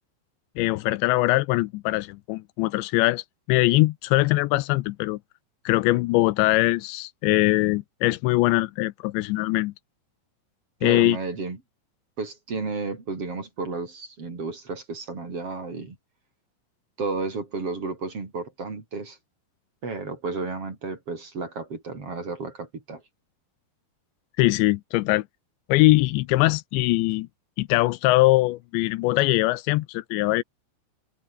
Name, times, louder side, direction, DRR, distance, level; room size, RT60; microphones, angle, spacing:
voice 1, 0.6-3.2 3.5-5.2 5.7-9.7 10.8-11.2 24.4-25.3 25.7-27.3 27.6-30.4, left 20 dB, 85° left, 3.0 m, -22 dB
voice 2, 10.8-11.6 12.2-16.0 17.0-19.2 19.8-23.0, right 3 dB, 35° right, 4.8 m, -32 dB
open air
omnidirectional pair, 5.1 m